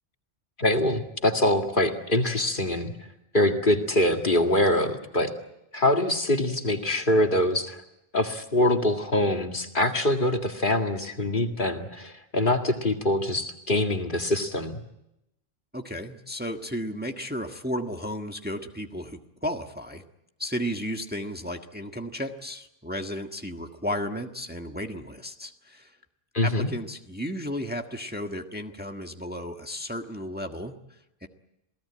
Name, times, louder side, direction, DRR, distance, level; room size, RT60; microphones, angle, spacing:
voice 1, 0.6-2.9 3.3-5.3 5.7-7.8 8.1-14.8 26.3-26.7, left 1 dB, 55° left, 4 dB, 2.3 m, -24 dB
voice 2, 15.7-20.0 20.4-26.0 26.4-31.3, equal, 10° right, 4 dB, 1.5 m, -34 dB
28.0 x 18.5 x 8.7 m, 0.85 s
omnidirectional pair, 1.1 m